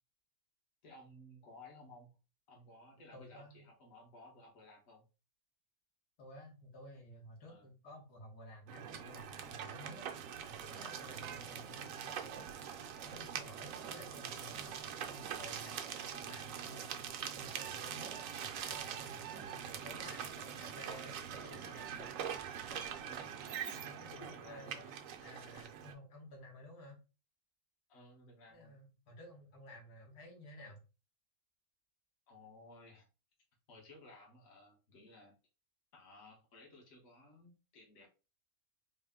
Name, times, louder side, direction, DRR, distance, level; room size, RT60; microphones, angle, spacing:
voice 1, 0.8-2.1 2.5-5.0 7.5-7.7 15.3-15.8 20.0-20.3 21.4-22.1 22.7-23.3 24.1-25.0 27.9-28.8 32.3-33.1 33.7-35.3 35.9-38.1, left 2 dB, 65° left, -1 dB, 1.5 m, -57 dB
voice 2, 3.1-3.7 6.2-10.1 10.5-12.5 13.0-16.9 17.3-22.0 23.7-27.0 28.5-30.8, equal, 90° left, -1 dB, 1.7 m, -54 dB
sound 1, 8.7-25.9, right 8 dB, 70° right, 0.9 m, -43 dB
4.1 x 2.1 x 3.5 m, 0.32 s
omnidirectional pair, 1.6 m